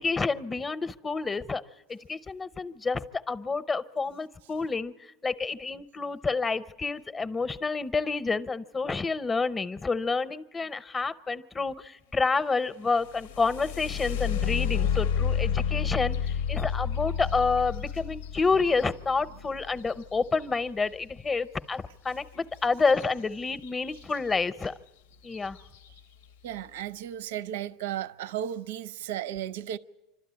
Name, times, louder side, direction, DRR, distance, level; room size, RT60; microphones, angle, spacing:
voice 1, 0.0-1.6 1.9-4.9 5.2-24.7 25.2-25.6, left 4 dB, 15° left, 0.6 m, -29 dB
sound 1, 13.0-20.8 22.9-23.0 23.5-24.0 24.6-24.7 25.2-25.6, left 7 dB, 90° left, 0.6 m, -30 dB
voice 2, 26.4-29.8, right 11 dB, 90° right, 0.6 m, -35 dB
27.0 x 12.5 x 9.6 m
supercardioid pair, 160°, 0 cm